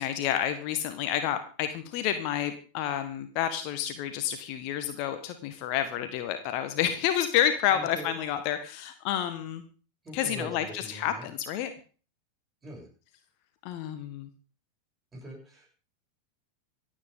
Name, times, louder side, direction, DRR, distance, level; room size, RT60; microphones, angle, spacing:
voice 1, 0.0-9.6 10.1-11.7 13.6-14.3, left 10 dB, 45° left, 9 dB, 1.4 m, -29 dB
voice 2, 7.7-8.2 10.0-11.3 12.6-12.9 15.1-15.7, right 1 dB, 20° right, -1 dB, 7.9 m, -42 dB
26.5 x 8.8 x 3.7 m, 0.40 s
figure-of-eight pair, 90°, 0 cm